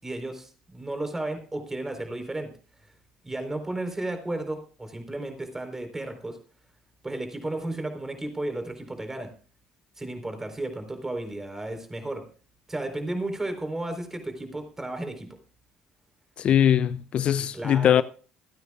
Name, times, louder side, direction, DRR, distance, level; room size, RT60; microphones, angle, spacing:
voice 1, 0.0-2.5 3.2-6.4 7.0-9.3 10.0-12.2 12.7-15.3 17.5-18.0, right 2 dB, 15° right, 4.1 m, -33 dB
voice 2, 16.4-18.0, left 10 dB, 55° left, 0.5 m, -21 dB
26.5 x 9.4 x 2.5 m
hypercardioid pair, 60°, 2 cm